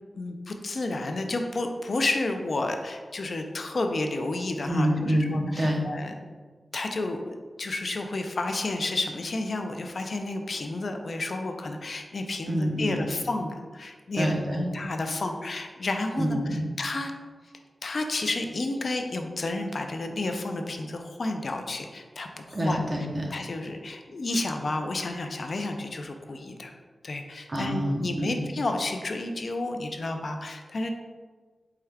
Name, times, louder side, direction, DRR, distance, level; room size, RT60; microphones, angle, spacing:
voice 1, 0.2-6.2 6.7-14.4 14.7-17.1 17.8-22.8 23.3-26.7 27.0-30.9, left 2 dB, 55° left, 5 dB, 0.3 m, -31 dB
voice 2, 4.7-5.8 12.5-13.1 14.1-14.7 16.2-16.7 22.5-23.3 27.5-28.4, equal, 35° right, -1 dB, 0.7 m, -27 dB
4.4 x 2.3 x 3.3 m, 1.5 s
wide cardioid pair, 110°, 0 cm